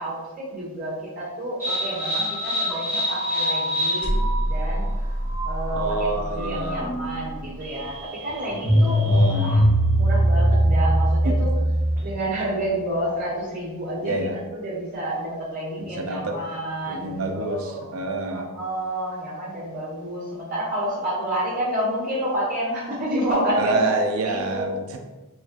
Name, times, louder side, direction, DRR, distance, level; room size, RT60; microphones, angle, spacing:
voice 1, 0.0-5.1 5.4-9.6 9.9-11.5 12.0-17.9 18.3-24.0 24.2-24.8, right 1 dB, 45° right, -15 dB, 1.3 m, -29 dB
sound 1, 1.6-12.2, equal, 10° right, 1.1 m, -22 dB
voice 2, 5.7-6.8 9.0-9.6 11.2-11.4 14.0-14.4 15.8-16.3 16.9-18.5 23.6-25.0, right 2 dB, 75° right, 3 dB, 0.5 m, -27 dB
4.1 x 2.4 x 2.4 m, 1.1 s
head